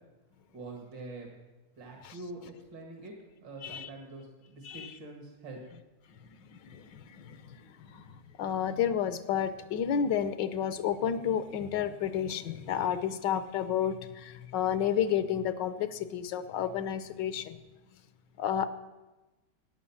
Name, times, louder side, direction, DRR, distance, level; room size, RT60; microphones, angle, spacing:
voice 1, 0.5-1.3 1.8-5.6, right 2 dB, 85° right, 2 dB, 2.6 m, -45 dB
voice 2, 6.5-8.1 8.4-17.6 18.4-18.7, left 9 dB, 80° left, 13 dB, 1.5 m, -31 dB
14.0 x 9.7 x 7.2 m, 1.1 s
omnidirectional pair, 1.9 m